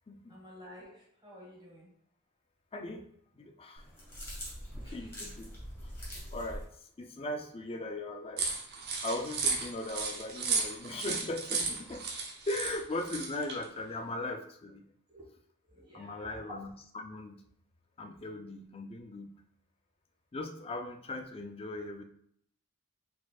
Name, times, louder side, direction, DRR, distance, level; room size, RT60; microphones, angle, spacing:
voice 1, 0.3-1.9 4.8-5.1 15.1-15.2 15.6-16.6, equal, 20° right, -3 dB, 1.3 m, -51 dB
voice 2, 2.7-3.1 3.4-3.9 4.9-5.5 5.8-5.9 6.3-6.7 7.0-8.5 9.0-12.0 12.5-14.8 15.9-17.4 18.0-19.3 20.3-22.0, left 2 dB, 25° left, 4 dB, 0.4 m, -38 dB
sound 1, 3.8-6.7, equal, 10° left, 1.7 m, -43 dB
sound 2, 8.4-13.6, right 4 dB, 50° right, 0.9 m, -34 dB
4.2 x 4.2 x 2.4 m, 0.68 s
head